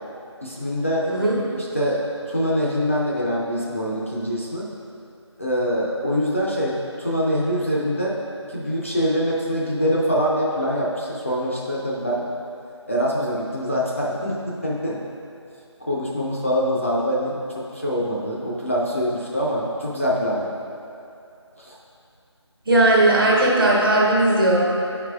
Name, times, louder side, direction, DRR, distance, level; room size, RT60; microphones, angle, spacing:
voice 1, 0.4-1.1 1.6-2.0 2.3-4.7 5.4-8.1 8.5-12.2 12.9-15.0 15.9-17.4 17.7-20.5 21.6-21.8, equal, 25° left, -6 dB, 0.5 m, -24 dB
voice 2, 1.1-1.4 22.7-24.6, right 1 dB, 50° right, -3 dB, 1.3 m, -17 dB
9.7 x 4.8 x 2.4 m, 2.6 s
figure-of-eight pair, 170°, 15 cm